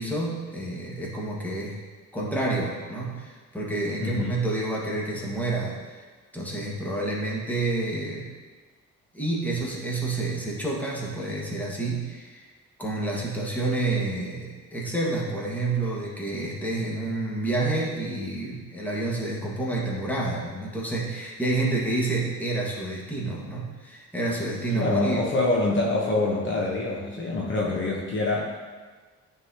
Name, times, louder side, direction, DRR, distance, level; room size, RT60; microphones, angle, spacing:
voice 1, 0.0-1.7 2.1-6.0 6.3-8.3 9.1-12.4 12.8-25.2, right 2 dB, 5° left, -4 dB, 1.5 m, -29 dB
voice 2, 4.0-4.4 24.7-28.5, left 2 dB, 40° left, -3 dB, 0.9 m, -25 dB
9.5 x 3.9 x 2.8 m, 1.4 s
cardioid pair, 90°, 30 cm